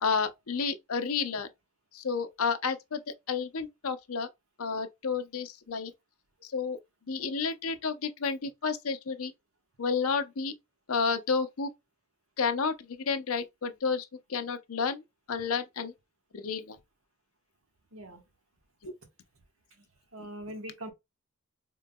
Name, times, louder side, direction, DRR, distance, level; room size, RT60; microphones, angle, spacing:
voice 1, 0.0-1.5 1.9-4.3 4.6-5.9 6.4-6.8 7.1-9.3 9.8-10.5 10.9-11.7 12.4-15.0 15.3-15.9 16.3-16.8 18.8-18.9, left 5 dB, 85° left, 0.7 m, -31 dB
voice 2, 17.9-18.2 20.1-20.9, right 1 dB, 70° right, 1.4 m, -41 dB
3.8 x 3.7 x 2.2 m
head